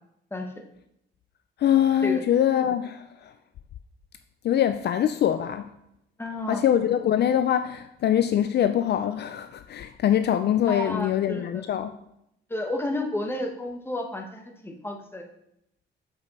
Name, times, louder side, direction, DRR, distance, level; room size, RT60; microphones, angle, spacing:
voice 1, 0.3-0.6 2.0-2.2 6.2-6.6 10.7-11.7 12.5-15.2, left 1 dB, 10° left, 2 dB, 1.2 m, -31 dB
voice 2, 1.6-3.3 4.4-5.7 6.5-11.9, left 10 dB, 55° left, 10 dB, 0.4 m, -23 dB
7.0 x 5.3 x 4.1 m, 0.78 s
cardioid pair, 90°, 20 cm